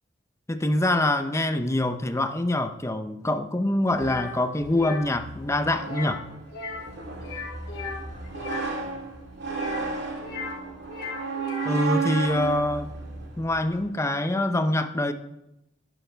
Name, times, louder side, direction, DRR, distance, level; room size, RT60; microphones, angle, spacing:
voice 1, 0.5-6.2 11.6-12.9 13.4-15.1, left 1 dB, 15° left, 8 dB, 0.7 m, -25 dB
sound 1, 3.9-13.9, right 4 dB, 65° right, 2.0 m, -34 dB
sound 2, 4.0-4.3 4.7-5.0 5.8-6.2 6.5-6.9 7.2-8.7 9.4-10.6 10.8-11.8, left 4 dB, 65° left, 4.9 m, -36 dB
11.5 x 11.0 x 3.4 m, 0.85 s
head